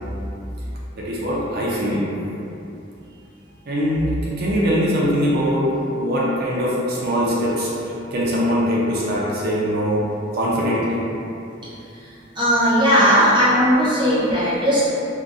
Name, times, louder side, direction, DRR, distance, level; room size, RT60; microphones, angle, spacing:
voice 1, 0.9-2.1 3.7-5.7 6.0-10.0 10.3-11.0, equal, 55° right, -6 dB, 0.5 m, -22 dB
voice 2, 12.4-14.9, equal, 25° right, -10 dB, 0.8 m, -17 dB
3.9 x 2.1 x 2.4 m, 2.8 s
head